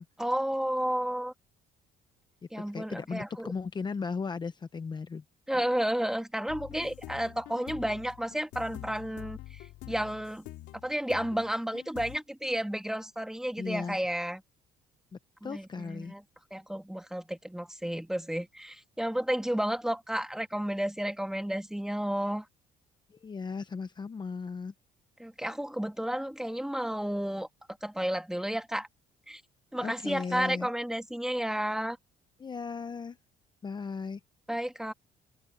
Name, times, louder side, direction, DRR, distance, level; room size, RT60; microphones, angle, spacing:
voice 1, 0.2-1.3 2.5-3.5 5.5-10.4 10.8-14.4 15.4-16.2 16.5-22.5 25.2-27.5 27.8-28.9 29.3-29.4 29.7-32.0 34.5-34.9, equal, 5° right, 1.9 m, -32 dB
voice 2, 2.6-5.2 13.6-14.0 15.1-16.1 23.1-24.7 29.8-30.7 32.4-33.2 33.6-34.2, left 5 dB, 25° left, 0.8 m, -36 dB
sound 1, 6.5-12.2, left 17 dB, 90° left, 3.3 m, -46 dB
cardioid pair, 110°, 17 cm